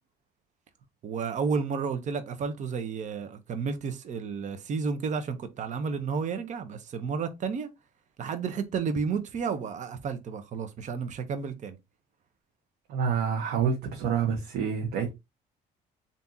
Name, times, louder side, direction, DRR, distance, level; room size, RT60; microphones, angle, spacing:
voice 1, 1.0-7.7 8.2-11.8, right 5 dB, 45° right, 0.7 m, -31 dB
voice 2, 12.9-15.1, right 6 dB, 80° right, 0.9 m, -27 dB
3.6 x 2.7 x 2.6 m
cardioid pair, 110°, 17 cm